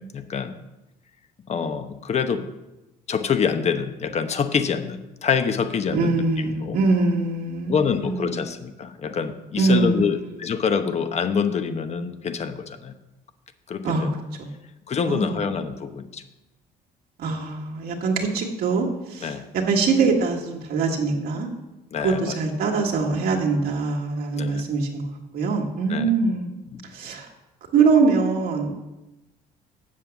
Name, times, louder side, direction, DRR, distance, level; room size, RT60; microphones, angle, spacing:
voice 1, 0.1-0.6 1.5-2.4 3.1-6.8 7.7-12.9 13.7-14.2 14.9-16.2 19.2-19.4 21.9-22.4 24.3-24.6 25.9-26.1 26.7-26.9, left 6 dB, 40° left, 9 dB, 1.0 m, -26 dB
voice 2, 5.9-8.5 9.6-10.3 13.8-14.1 15.1-15.4 17.2-21.5 22.0-26.5 26.9-27.3 27.7-28.7, right 4 dB, 65° right, -1 dB, 1.8 m, -23 dB
7.6 x 7.5 x 7.2 m, 0.99 s
cardioid pair, 110°, 17 cm